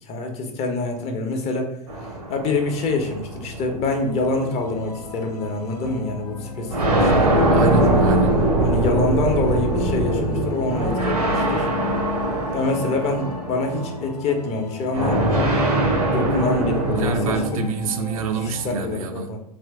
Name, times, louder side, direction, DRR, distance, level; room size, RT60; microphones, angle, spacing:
voice 1, 0.1-1.7 2.0-8.2 8.6-11.7 12.5-15.5 16.1-17.2 17.5-17.6 18.4-19.4, left 3 dB, 30° left, 3 dB, 0.6 m, -26 dB
sound 1, 1.9-4.6 5.5-5.6 6.7-14.0 14.9-17.5, right 1 dB, 80° right, 0.9 m, -22 dB
sound 2, 3.9-18.8, left 3 dB, 85° left, 0.6 m, -38 dB
voice 2, 7.4-8.4 16.9-19.3, right 4 dB, 60° right, 7 dB, 0.4 m, -27 dB
2.9 x 2.5 x 3.3 m, 0.82 s
figure-of-eight pair, 90°, 20 cm